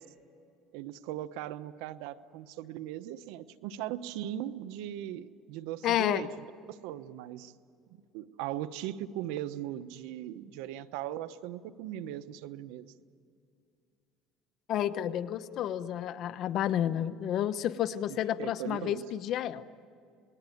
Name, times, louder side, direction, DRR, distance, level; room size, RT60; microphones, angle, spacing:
voice 1, 0.7-7.5 7.9-12.9 18.4-19.1, right 12 dB, 85° right, 12 dB, 1.0 m, -39 dB
voice 2, 5.8-6.2 14.7-19.6, left 11 dB, 55° left, 11 dB, 1.0 m, -30 dB
28.5 x 20.5 x 9.2 m, 2.4 s
cardioid pair, 120°, 0 cm